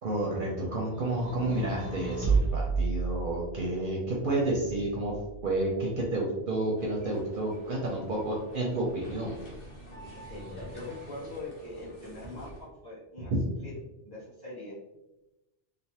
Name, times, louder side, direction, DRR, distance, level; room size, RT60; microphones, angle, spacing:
voice 1, 0.0-5.2 5.4-9.3 13.3-13.4, right 2 dB, 60° right, -3 dB, 0.7 m, -30 dB
sound 1, 1.0-3.8 4.7-5.6, right 4 dB, 85° left, 1.2 m, -31 dB
sound 2, 6.8-12.6, right 1 dB, 60° left, 0.9 m, -47 dB
voice 2, 10.3-13.3 13.6-13.7 14.0-14.8, left 2 dB, 20° left, -9 dB, 1.2 m, -42 dB
3.2 x 2.1 x 2.7 m, 0.99 s
omnidirectional pair, 1.1 m